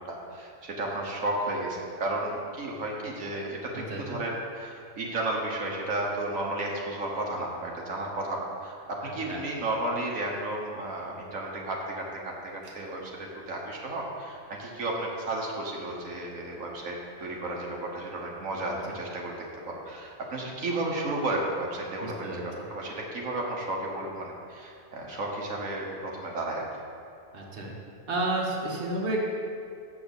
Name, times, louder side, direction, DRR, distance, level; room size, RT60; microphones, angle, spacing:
voice 1, 0.0-26.6, right 2 dB, 80° right, -2 dB, 1.6 m, -33 dB
voice 2, 3.9-4.2 9.0-9.4 22.0-22.4 27.3-27.7 28.1-29.2, right 2 dB, 45° right, -2 dB, 1.5 m, -31 dB
7.7 x 6.2 x 7.1 m, 2.4 s
omnidirectional pair, 1.4 m